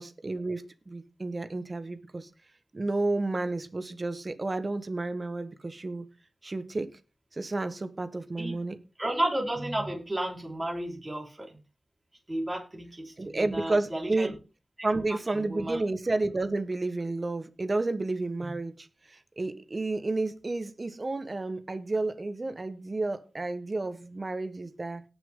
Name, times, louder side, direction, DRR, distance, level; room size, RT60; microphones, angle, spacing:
voice 1, 0.0-2.3 2.7-6.1 6.4-6.9 7.3-8.8 13.2-14.4 14.8-25.0, right 2 dB, 40° right, 1.4 m, -31 dB
voice 2, 9.0-11.5 12.3-14.3 14.8-14.9 15.5-15.8 18.4-18.5, right 1 dB, 25° right, 4.8 m, -32 dB
18.0 x 6.5 x 3.9 m
wide cardioid pair, 90°, 0 cm